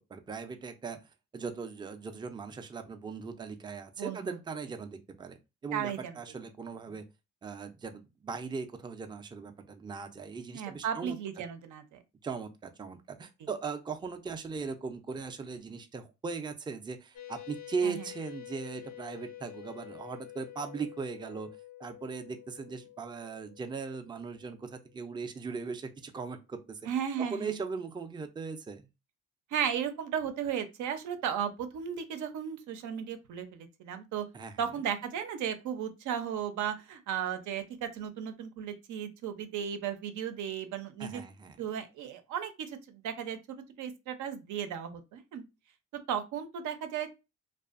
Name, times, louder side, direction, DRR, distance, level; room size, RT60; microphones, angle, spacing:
voice 1, 0.1-1.0 1.3-5.4 5.6-7.0 7.4-11.2 12.2-21.5 21.8-26.8 27.2-28.9 34.3-34.7 41.0-41.6, right 5 dB, 15° right, 0.4 m, -39 dB
voice 2, 4.0-4.3 5.7-6.2 10.5-12.0 13.4-13.5 17.8-18.0 26.9-27.5 29.5-34.3 34.6-41.2 41.6-45.4 46.1-47.1, right 8 dB, 80° right, 0.6 m, -35 dB
sound 1, 17.1-25.2, left 14 dB, 65° left, 0.5 m, -49 dB
2.5 x 2.3 x 2.4 m
cardioid pair, 90°, 30 cm